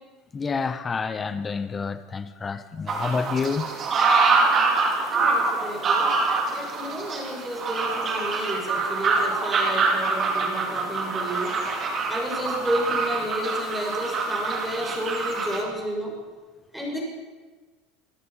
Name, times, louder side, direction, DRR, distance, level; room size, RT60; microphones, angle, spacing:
voice 1, 0.3-3.7, left 5 dB, 20° left, 1.2 m, -28 dB
sound 1, 2.9-15.6, right 4 dB, 30° right, 4.5 m, -25 dB
voice 2, 5.1-6.1 6.4-11.5 12.1-16.2 16.7-17.0, equal, ahead, 6.7 m, -31 dB
26.5 x 17.5 x 5.9 m
supercardioid pair, 140°, 0 cm